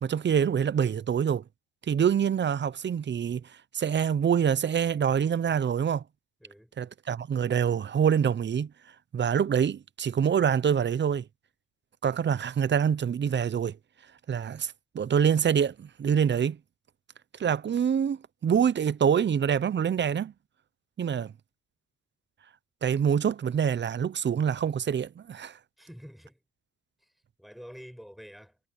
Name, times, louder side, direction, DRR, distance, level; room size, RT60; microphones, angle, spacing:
voice 1, 0.0-1.4 1.9-3.4 3.7-6.0 6.8-8.7 9.1-11.2 12.0-13.8 14.3-16.6 17.4-20.3 21.0-21.3 22.8-25.6, right 8 dB, 40° right, 0.7 m, -25 dB
voice 2, 6.4-6.7 25.8-26.4 27.0-27.1 27.4-28.6, equal, ahead, 5.6 m, -47 dB
cardioid pair, 90°, 30 cm